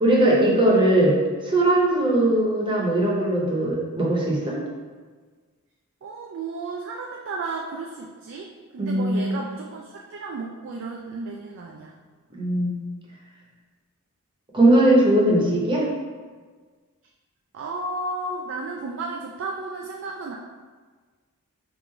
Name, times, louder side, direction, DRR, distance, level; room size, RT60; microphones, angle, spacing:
voice 1, 0.0-1.2 1.4-4.6 8.8-9.4 12.3-12.8 14.5-15.8, right 1 dB, 20° right, -4 dB, 0.8 m, -20 dB
voice 2, 6.0-11.9 17.5-20.4, right 3 dB, 55° right, -1 dB, 0.4 m, -33 dB
3.6 x 2.5 x 4.4 m, 1.5 s
head